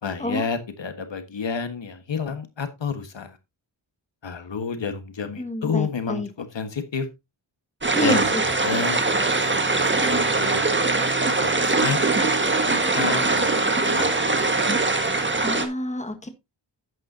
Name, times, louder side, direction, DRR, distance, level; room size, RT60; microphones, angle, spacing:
voice 1, 0.0-3.4 4.2-7.1 8.0-10.7 11.2-12.0 12.6-13.5 13.9-14.3, left 5 dB, 70° left, 9 dB, 1.5 m, -30 dB
voice 2, 5.4-6.3 7.9-8.4 15.4-16.3, left 1 dB, 15° left, 6 dB, 1.7 m, -28 dB
sound 1, 7.8-15.6, right 3 dB, 25° right, 1.6 m, -22 dB
11.0 x 9.2 x 2.7 m, 0.22 s
wide cardioid pair, 110°, 46 cm